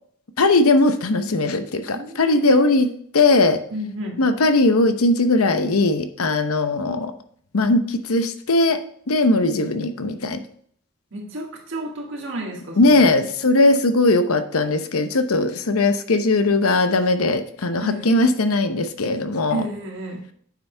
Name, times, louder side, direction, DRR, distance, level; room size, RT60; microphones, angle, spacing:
voice 1, 0.4-2.9 3.1-3.6 4.2-7.1 7.5-10.4 12.8-19.6, left 2 dB, 85° left, 9 dB, 0.8 m, -19 dB
voice 2, 1.9-2.6 3.7-4.3 11.1-13.1 17.8-18.1 19.5-20.3, right 1 dB, 60° right, 0 dB, 2.1 m, -31 dB
9.1 x 7.2 x 3.4 m, 0.62 s
head